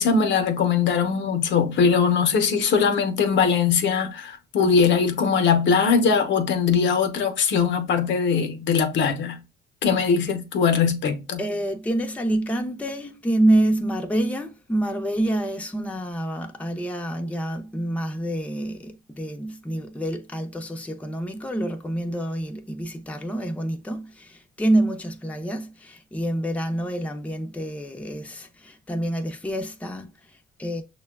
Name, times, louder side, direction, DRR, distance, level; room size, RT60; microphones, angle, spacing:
voice 1, 0.0-9.4 9.8-11.4, left 6 dB, 65° left, 0.7 m, -21 dB
voice 2, 11.4-30.8, right 1 dB, 5° left, 0.6 m, -27 dB
6.3 x 2.2 x 2.2 m
cardioid pair, 90°, 20 cm